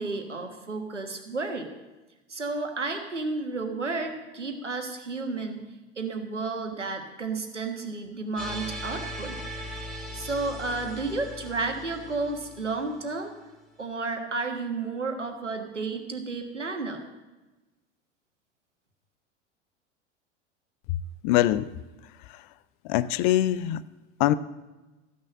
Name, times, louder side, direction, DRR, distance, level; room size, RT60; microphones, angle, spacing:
voice 1, 0.0-1.7 2.3-5.6 6.0-9.4 10.1-13.3 13.8-17.0, right 3 dB, 85° right, 5 dB, 1.5 m, -32 dB
sound 1, 8.4-13.5, equal, ahead, 2.2 m, -39 dB
voice 2, 21.2-21.7 22.3-22.4 22.8-23.8 24.2-24.3, left 14 dB, 45° left, 17 dB, 0.5 m, -23 dB
13.5 x 6.5 x 7.4 m, 1.1 s
figure-of-eight pair, 80°, 35 cm